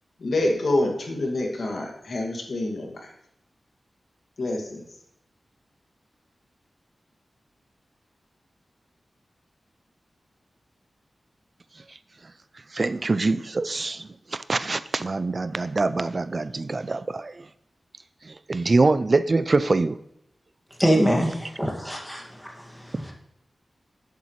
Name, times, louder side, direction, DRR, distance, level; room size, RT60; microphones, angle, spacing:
voice 1, 0.2-3.1 4.4-4.8, left 2 dB, 70° left, 2.1 m, -26 dB
voice 2, 12.7-17.5 18.2-20.0, right 3 dB, 40° right, 0.3 m, -24 dB
voice 3, 20.8-23.1, equal, ahead, 1.9 m, -24 dB
11.0 x 8.1 x 3.1 m
wide cardioid pair, 95°, 0 cm